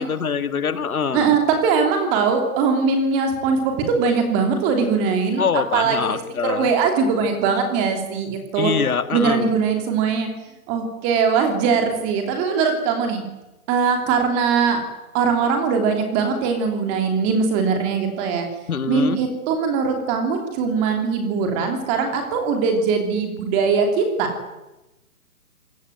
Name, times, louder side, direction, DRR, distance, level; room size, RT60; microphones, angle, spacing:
voice 1, 0.0-1.4 5.4-6.7 8.6-9.5 18.7-19.2, left 6 dB, 75° left, 11 dB, 2.3 m, -24 dB
voice 2, 1.1-5.4 5.7-8.7 9.1-10.3 10.7-13.2 13.7-14.8 15.1-18.5 18.9-24.3, right 5 dB, 15° right, 5 dB, 2.9 m, -21 dB
26.0 x 17.5 x 9.2 m, 1.0 s
hypercardioid pair, 170°, 44 cm